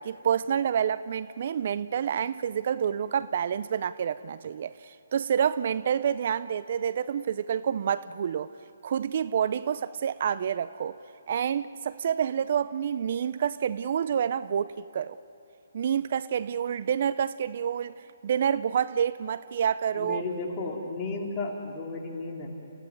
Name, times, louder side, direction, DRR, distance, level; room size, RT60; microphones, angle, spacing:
voice 1, 0.0-8.5 8.8-11.0 11.3-15.2 15.7-17.9 18.2-20.2, right 8 dB, 50° right, 0.5 m, -28 dB
voice 2, 20.0-22.5, left 3 dB, 25° left, 3.4 m, -33 dB
29.0 x 16.5 x 9.6 m
hypercardioid pair, 150°, 0 cm